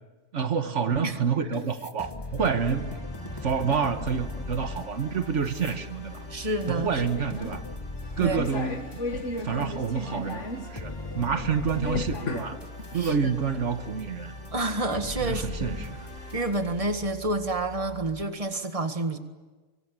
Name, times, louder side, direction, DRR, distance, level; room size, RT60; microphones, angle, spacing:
voice 1, 0.3-3.0 3.4-6.2 6.7-7.6 8.2-9.0 9.4-12.6 12.9-14.3 15.2-16.1, right 6 dB, 80° right, 8 dB, 1.6 m, -28 dB
sound 1, 1.1-1.2 1.5-9.9 10.3-10.4 10.8-13.2 13.6-16.8, left 2 dB, 20° left, 1.2 m, -39 dB
sound 2, 2.4-16.4, left 1 dB, 60° left, 5.4 m, -49 dB
sound 3, 3.2-18.2, left 2 dB, 90° left, 2.3 m, -38 dB
voice 2, 6.3-7.0 8.2-8.4 12.9-13.1 14.5-15.9 16.3-19.2, right 2 dB, 30° right, 7 dB, 1.8 m, -29 dB
24.5 x 24.0 x 9.6 m, 1.2 s
omnidirectional pair, 1.2 m